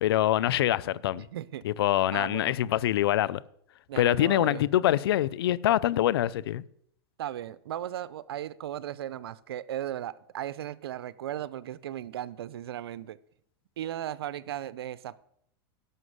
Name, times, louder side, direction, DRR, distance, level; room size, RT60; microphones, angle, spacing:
voice 1, 0.0-1.3 1.6-3.4 4.0-6.6, left 13 dB, 80° left, 0.5 m, -25 dB
voice 2, 1.2-1.6 2.1-2.5 3.9-4.6 7.2-13.2 13.8-15.2, right 11 dB, 90° right, 0.6 m, -36 dB
11.0 x 6.2 x 8.0 m
supercardioid pair, 130°, 12 cm